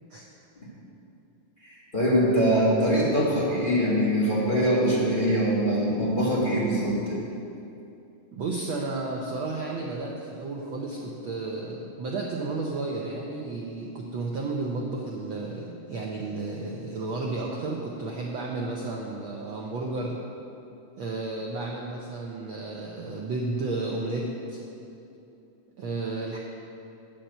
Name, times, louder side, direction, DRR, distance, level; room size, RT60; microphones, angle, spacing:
voice 1, 1.6-7.2, equal, 20° left, -8 dB, 1.5 m, -23 dB
voice 2, 8.3-20.2 21.0-24.6 25.8-26.4, right 3 dB, 80° right, -2 dB, 1.1 m, -32 dB
8.9 x 5.8 x 7.9 m, 2.7 s
omnidirectional pair, 3.3 m